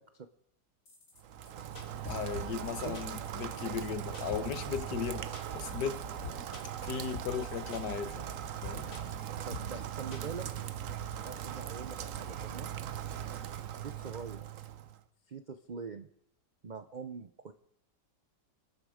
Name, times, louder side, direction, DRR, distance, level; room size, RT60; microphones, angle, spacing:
sound 1, 0.9-1.2 1.5-1.6 1.8-2.7 2.9-3.3 3.5-3.6 3.8-3.9 4.1-4.5 4.7-5.1 5.3-6.0 6.2-6.9 7.1-7.5 7.7-8.1 8.3-8.4 8.6-9.3 9.5-9.9 10.1-10.7 11.0-11.1, left 3 dB, 50° left, 3.3 m, -44 dB
Rain, 1.2-15.0, right 9 dB, 60° right, 1.0 m, -40 dB
voice 1, 2.0-5.3 5.6-6.0 6.8-8.3 8.6-8.9, left 7 dB, 70° left, 12 dB, 1.7 m, -36 dB
voice 2, 2.6-3.0 9.4-10.5 11.2-12.7 13.8-14.5 15.3-16.1 16.6-17.5, right 5 dB, 85° right, 10 dB, 0.4 m, -43 dB
27.0 x 10.0 x 4.9 m, 0.71 s
omnidirectional pair, 1.9 m